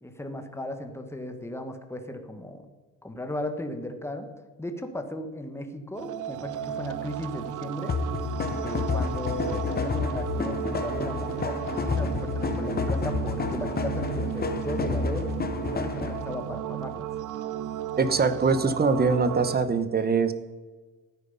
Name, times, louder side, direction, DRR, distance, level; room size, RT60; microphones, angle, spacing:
voice 1, 0.0-2.7 3.0-4.3 4.6-8.0 8.6-15.3 15.6-17.1, left 1 dB, 10° left, 6 dB, 1.5 m, -36 dB
sound 1, 5.9-19.6, right 11 dB, 65° right, 0.7 m, -34 dB
sound 2, 7.9-16.3, left 4 dB, 30° left, 1.0 m, -30 dB
voice 2, 18.0-20.3, right 4 dB, 30° right, 12 dB, 1.0 m, -23 dB
13.5 x 9.5 x 5.6 m, 1.3 s
cardioid pair, 120°, 33 cm